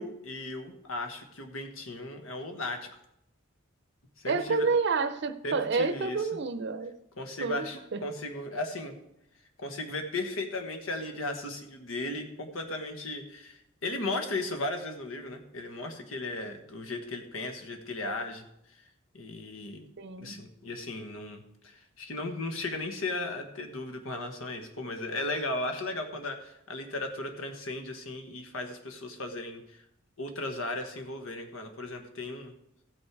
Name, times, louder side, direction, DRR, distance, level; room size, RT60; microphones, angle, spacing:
voice 1, 0.0-2.9 4.2-4.7 5.4-6.3 7.2-9.0 9.6-18.5 19.1-19.8 20.2-29.8 30.2-32.5, left 2 dB, 85° left, 1.4 m, -36 dB
voice 2, 4.3-6.9 7.4-8.0 20.0-20.4, right 4 dB, 60° right, 0.6 m, -29 dB
15.0 x 6.3 x 4.7 m
head